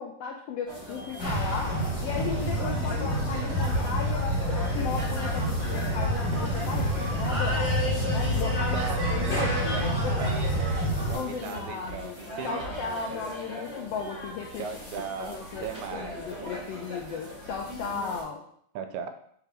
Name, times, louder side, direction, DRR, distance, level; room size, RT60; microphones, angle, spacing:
voice 1, 0.0-1.7 2.0-7.7 8.0-8.8 9.1-10.3 11.1-12.2 12.4-14.7 14.9-18.4, left 5 dB, 80° left, 0 dB, 1.4 m, -36 dB
sound 1, 0.7-18.2, equal, 5° right, 2.3 m, -37 dB
sound 2, 1.2-11.1, equal, 35° left, 2.3 m, -28 dB
voice 2, 8.7-12.6 14.6-16.5 18.8-19.1, right 7 dB, 85° right, 7 dB, 2.0 m, -38 dB
7.1 x 4.7 x 3.4 m, 0.64 s
omnidirectional pair, 3.5 m